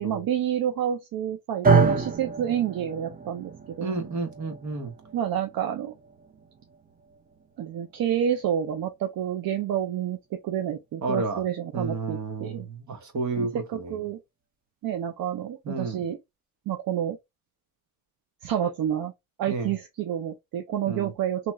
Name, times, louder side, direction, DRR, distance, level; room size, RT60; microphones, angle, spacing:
voice 1, 0.0-3.5 3.8-4.0 5.1-5.9 7.6-12.7 13.4-14.2 14.8-16.2 16.7-17.2 18.4-19.1 19.4-21.5, right 10 dB, 75° right, 0.6 m, -29 dB
sound 1, 1.6-9.9, right 5 dB, 25° right, 0.4 m, -29 dB
voice 2, 3.8-4.9 11.0-11.4 11.7-13.9 15.6-16.1 19.5-19.7 20.9-21.1, right 3 dB, 55° right, 1.2 m, -31 dB
2.9 x 2.3 x 2.9 m
cardioid pair, 125°, 35 cm